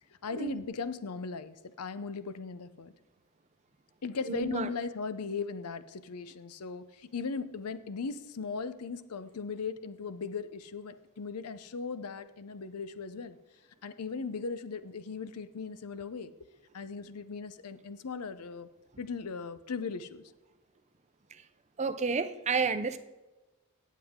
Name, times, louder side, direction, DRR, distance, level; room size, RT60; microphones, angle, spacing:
voice 1, 0.2-2.9 4.0-13.4 13.8-16.3 16.7-18.7 19.0-20.3, left 5 dB, 90° left, 13 dB, 0.6 m, -38 dB
voice 2, 4.3-4.7 21.8-23.0, right 4 dB, 30° right, 11 dB, 0.6 m, -30 dB
17.5 x 7.5 x 3.6 m, 1.1 s
head